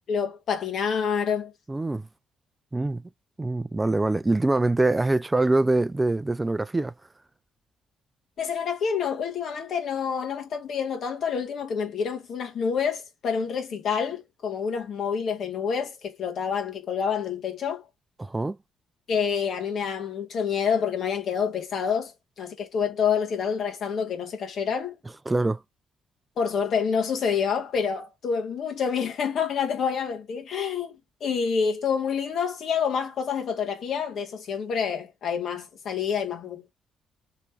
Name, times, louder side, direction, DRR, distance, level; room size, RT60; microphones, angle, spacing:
voice 1, 0.1-1.5 8.4-17.8 19.1-22.1 22.4-24.9 26.4-36.7, left 6 dB, 65° left, 1.2 m, -27 dB
voice 2, 1.7-2.1 2.7-3.0 3.4-6.9 18.2-18.6 25.3-25.6, right 2 dB, 20° right, 0.3 m, -24 dB
3.2 x 3.1 x 2.6 m
hypercardioid pair, 50°, 0 cm